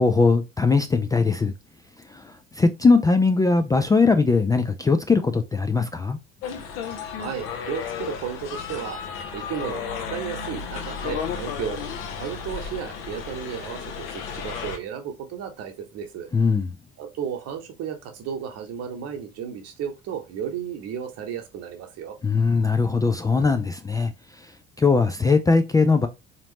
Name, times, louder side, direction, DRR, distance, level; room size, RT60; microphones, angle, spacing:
voice 1, 0.0-1.5 2.1-6.2 16.3-16.8 22.2-24.1 24.4-24.5 24.8-26.1, left 4 dB, 10° left, 0.4 m, -20 dB
sound 1, 6.4-14.8, left 6 dB, 60° left, 0.9 m, -33 dB
voice 2, 6.9-9.0 9.3-11.8 12.2-16.3 17.0-22.2, right 8 dB, 45° right, 1.0 m, -34 dB
3.9 x 2.8 x 3.0 m
figure-of-eight pair, 55°, 34 cm